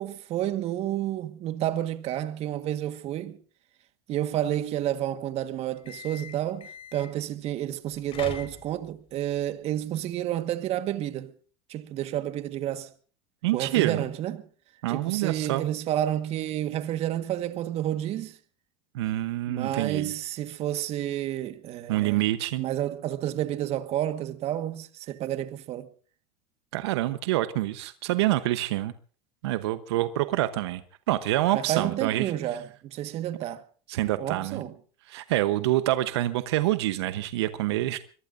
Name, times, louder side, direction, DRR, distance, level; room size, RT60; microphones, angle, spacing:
voice 1, 0.0-3.4 4.1-11.3 11.7-12.9 13.5-14.4 14.9-18.4 19.5-22.2 22.6-25.9 31.5-33.6 34.2-34.7, right 12 dB, 50° right, 1.5 m, -30 dB
sound 1, 5.7-7.2 7.9-9.0, left 6 dB, 40° left, 4.9 m, -41 dB
voice 2, 13.4-14.0 14.8-15.7 18.9-20.1 21.9-22.6 26.7-28.9 29.4-30.8 31.1-32.3 33.9-34.6 35.1-38.0, right 15 dB, 85° right, 1.0 m, -26 dB
24.0 x 22.5 x 2.6 m
supercardioid pair, 110°, 14 cm